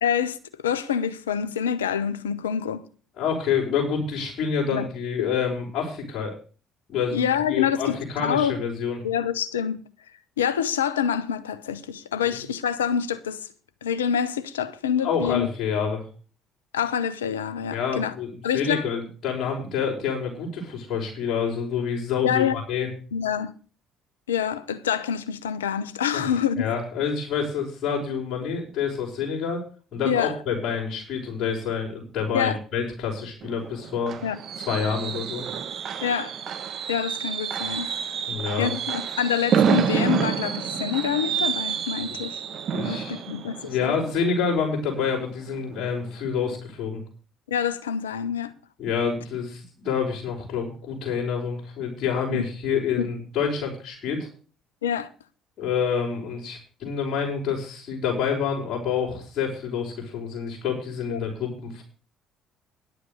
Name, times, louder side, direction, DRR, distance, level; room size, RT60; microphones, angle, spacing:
voice 1, 0.0-2.8 4.7-4.9 5.2-5.3 7.1-8.6 9.0-9.8 10.4-13.4 13.8-15.5 16.7-18.1 18.4-18.9 22.2-22.6 23.1-23.5 24.3-26.7 30.0-30.3 32.3-32.6 34.2-34.4 36.0-36.3 36.9-37.9 38.6-42.4 42.8-43.9 47.5-48.5 52.3-52.4 53.0-53.1 54.8-55.1 61.1-61.2, left 8 dB, 85° left, 0.8 m, -26 dB
voice 2, 3.2-6.3 6.9-9.0 12.3-12.4 15.0-16.1 17.7-22.9 26.1-26.2 26.6-29.6 29.9-34.1 34.6-35.5 38.3-38.7 42.7-43.2 43.6-47.0 48.8-54.3 55.6-61.8, left 6 dB, 50° left, 5.3 m, -27 dB
Fireworks, 33.4-45.1 45.5-45.8 46.0-46.1, right 7 dB, 55° right, 1.4 m, -28 dB
11.0 x 7.9 x 6.9 m
hypercardioid pair, 55°, 0 cm